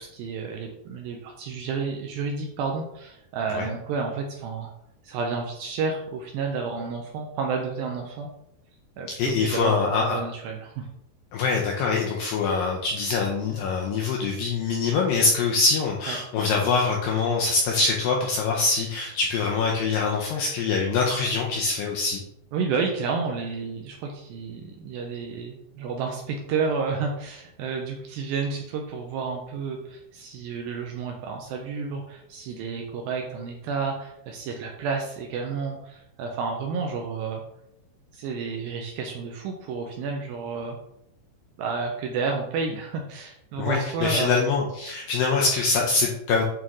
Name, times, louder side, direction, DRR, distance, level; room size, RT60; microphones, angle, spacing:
voice 1, 0.0-4.7 5.0-8.3 9.0-10.9 16.1-16.2 22.5-37.4 38.1-40.8 41.6-44.4, right 5 dB, 80° right, 2 dB, 2.1 m, -31 dB
voice 2, 9.2-10.2 11.3-22.2 43.6-46.4, left 4 dB, 80° left, 0 dB, 2.0 m, -24 dB
8.8 x 3.7 x 3.0 m, 0.80 s
omnidirectional pair, 4.7 m